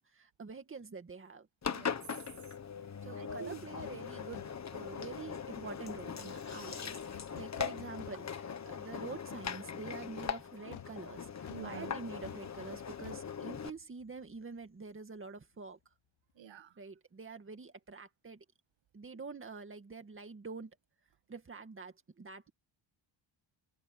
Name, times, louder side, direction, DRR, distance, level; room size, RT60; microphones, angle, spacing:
voice 1, 0.0-1.5 3.0-15.8 16.8-18.4 18.9-20.7 21.3-22.5, right 4 dB, 25° right, 2.1 m, -47 dB
Engine, 1.6-13.7, left 7 dB, 35° left, 1.3 m, -41 dB
voice 2, 1.7-2.0 3.2-3.6 11.5-12.0 16.4-16.8, right 9 dB, 65° right, 1.4 m, -47 dB
sound 1, 3.3-3.5 3.8-4.1 4.3-4.7 7.1-8.6 8.9-9.0 10.7-14.4 14.6-14.8, left 10 dB, 75° left, 2.3 m, -53 dB
wide cardioid pair, 165°, 49 cm